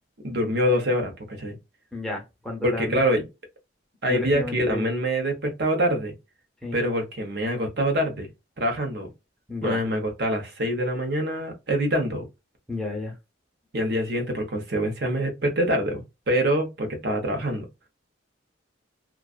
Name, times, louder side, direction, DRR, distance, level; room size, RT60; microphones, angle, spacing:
voice 1, 0.2-1.6 2.6-3.2 4.0-6.1 6.7-8.3 8.6-9.1 9.6-12.2 13.7-17.6, equal, 55° right, 0.8 m, -25 dB
voice 2, 1.9-3.0 4.1-4.9 6.6-6.8 9.5-9.8 12.7-13.1, left 2 dB, ahead, 0.6 m, -32 dB
2.4 x 2.4 x 2.3 m
head